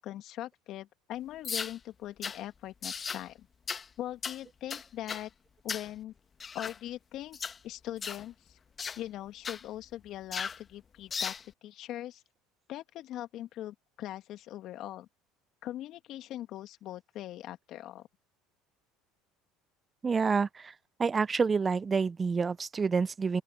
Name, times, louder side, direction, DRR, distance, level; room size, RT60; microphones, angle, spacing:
voice 1, 0.0-3.5 4.0-5.3 5.6-6.1 6.5-7.4 7.6-8.6 9.0-12.2 12.7-15.1 15.6-18.1, left 13 dB, 60° left, 2.3 m, -41 dB
sound 1, 1.4-1.8 2.2-2.4 2.8-3.2 3.7-3.9 4.2-4.4 4.7-5.3 5.7-5.9 6.4-6.8 7.3-7.6 8.0-8.2 8.8-9.0 9.4-9.6 10.3-10.6 11.1-11.4, left 6 dB, 35° left, 1.5 m, -36 dB
voice 2, 20.0-20.7 21.0-23.4, right 5 dB, 25° right, 0.6 m, -28 dB
open air
hypercardioid pair, 80°, 0 cm